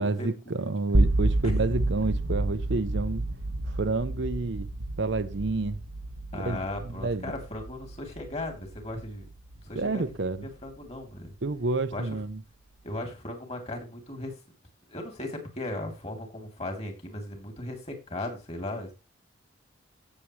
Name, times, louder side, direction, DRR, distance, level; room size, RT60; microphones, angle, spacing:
voice 1, 0.0-3.3 3.7-4.7 5.0-5.8 6.3-7.3 9.7-10.5 11.4-12.4, right 3 dB, 65° right, 0.7 m, -29 dB
sound 1, 0.9-10.9, right 2 dB, 85° right, 1.1 m, -30 dB
voice 2, 6.3-9.3 9.6-10.0 10.4-11.3 11.9-12.2 12.8-14.3 14.9-18.9, left 1 dB, 30° left, 3.2 m, -37 dB
16.5 x 7.5 x 3.2 m
head